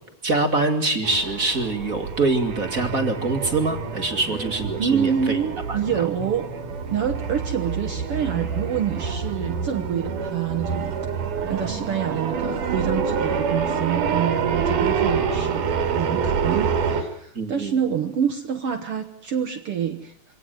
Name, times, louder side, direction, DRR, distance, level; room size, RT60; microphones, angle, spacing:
voice 1, 0.2-5.4 5.7-6.1 17.3-17.7, right 3 dB, 30° right, 6 dB, 2.1 m, -24 dB
sound 1, 1.0-17.0, right 6 dB, 90° right, 3.9 m, -27 dB
voice 2, 4.8-6.5 6.9-11.0 11.5-20.1, right 8 dB, 55° right, 7 dB, 1.8 m, -27 dB
24.5 x 18.0 x 9.1 m, 0.68 s
omnidirectional pair, 3.6 m